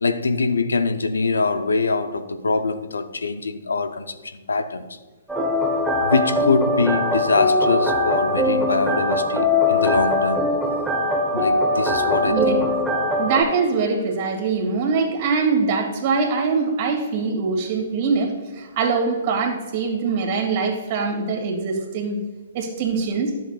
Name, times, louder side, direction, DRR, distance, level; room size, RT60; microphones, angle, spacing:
voice 1, 0.0-5.0 6.0-10.5 11.3-12.6, left 3 dB, 80° left, 0.6 m, -23 dB
sound 1, 5.3-13.4, left 1 dB, 5° right, 1.1 m, -21 dB
voice 2, 12.2-12.7 13.2-22.2 22.5-23.3, right 4 dB, 45° right, 2.0 m, -23 dB
11.0 x 7.6 x 2.4 m
figure-of-eight pair, 125°, 0 cm